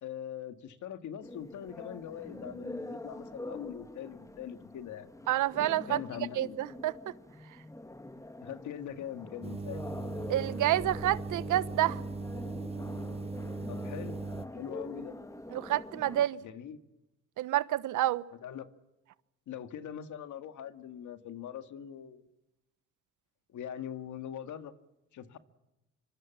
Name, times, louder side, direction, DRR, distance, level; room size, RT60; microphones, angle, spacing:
voice 1, 0.0-5.1 5.9-6.6 8.4-9.8 13.7-14.2 14.5-15.1 16.4-16.8 18.4-18.7 19.5-22.2 23.5-24.7 25.1-25.4, left 9 dB, 75° left, 2.1 m, -42 dB
sound 1, 1.2-16.3, left 1 dB, 10° left, 1.9 m, -45 dB
voice 2, 5.3-6.0 6.3-7.0 10.3-12.0 15.5-16.4 17.4-18.2, right 13 dB, 80° right, 1.1 m, -28 dB
sound 2, 9.4-14.5, right 3 dB, 20° right, 1.1 m, -39 dB
25.5 x 25.0 x 7.3 m
cardioid pair, 90°, 30 cm